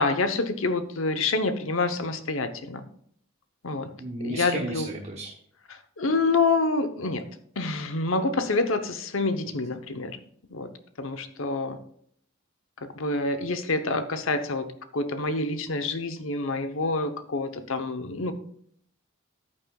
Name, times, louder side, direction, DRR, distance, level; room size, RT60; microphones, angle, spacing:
voice 1, 0.0-2.8 3.6-3.9 4.2-4.9 6.0-7.2 7.6-10.2 10.5-10.7 11.0-11.8 12.8-14.7 14.9-18.3, left 3 dB, 75° left, 9 dB, 0.9 m, -27 dB
voice 2, 4.0-5.3 18.2-18.3, right 1 dB, 35° right, 0 dB, 1.1 m, -33 dB
14.0 x 8.6 x 2.3 m, 0.66 s
head